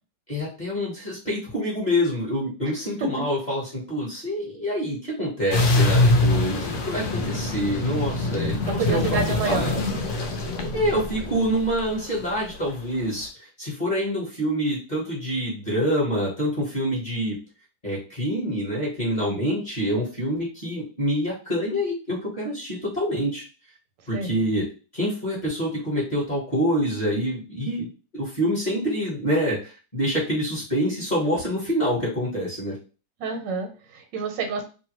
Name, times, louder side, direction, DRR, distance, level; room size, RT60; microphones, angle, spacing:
voice 1, 0.3-9.8 10.7-17.4 17.8-23.4 24.1-24.7 24.9-27.9 28.1-32.8, equal, 30° left, -6 dB, 0.9 m, -26 dB
sound 1, 5.5-12.9, left 2 dB, 65° left, 0.7 m, -24 dB
voice 2, 8.8-9.7 24.1-24.4 33.2-34.6, right 5 dB, 80° right, 4 dB, 1.4 m, -28 dB
2.9 x 2.2 x 2.9 m, 0.34 s
omnidirectional pair, 1.9 m